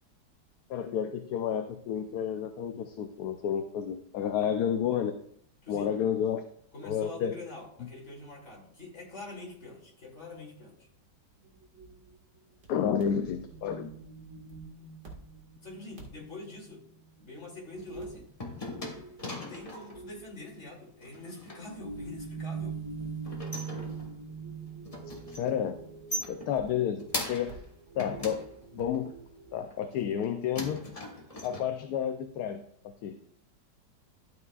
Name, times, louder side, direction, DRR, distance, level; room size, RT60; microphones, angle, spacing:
voice 1, 0.7-5.1 5.7-6.4 6.8-7.3 12.7-13.9 25.4-25.8 26.3-27.6 28.0-28.4 28.7-29.1 29.5-30.8 31.4-33.1, left 8 dB, 70° left, 7 dB, 1.1 m, -31 dB
voice 2, 6.7-10.9 15.6-16.8 17.2-18.3 19.2-22.8, left 2 dB, 40° left, -2 dB, 3.0 m, -45 dB
Common Disorder, 11.8-11.9 12.6-12.7 13.0-17.2 17.6-18.2 18.5-20.2 21.6-29.6, right 5 dB, 45° right, 2.1 m, -43 dB
sound 1, 17.7-20.0 21.0-21.6 23.0-24.3 24.7-25.6 25.8-27.6 28.0-29.1 29.6-30.2 30.5-31.6, left 1 dB, 20° left, 1.3 m, -40 dB
12.0 x 8.2 x 2.4 m, 0.65 s
omnidirectional pair, 1.9 m